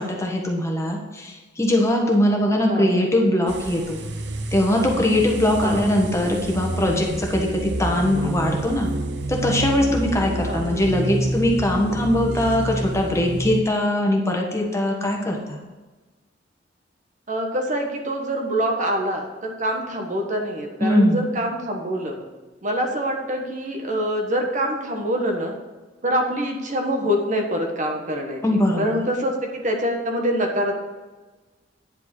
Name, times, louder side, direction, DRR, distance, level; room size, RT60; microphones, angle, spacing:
voice 1, 0.0-4.0 4.5-8.9 9.3-15.6 20.8-21.2 28.4-29.0, left 1 dB, 15° left, 0 dB, 1.4 m, -21 dB
sound 1, 3.5-13.6, right 1 dB, 65° right, 0.8 m, -29 dB
voice 2, 17.3-22.2 22.6-25.5 26.0-28.4 28.8-30.7, equal, 45° right, 2 dB, 1.3 m, -25 dB
9.8 x 5.2 x 6.0 m, 1.2 s
head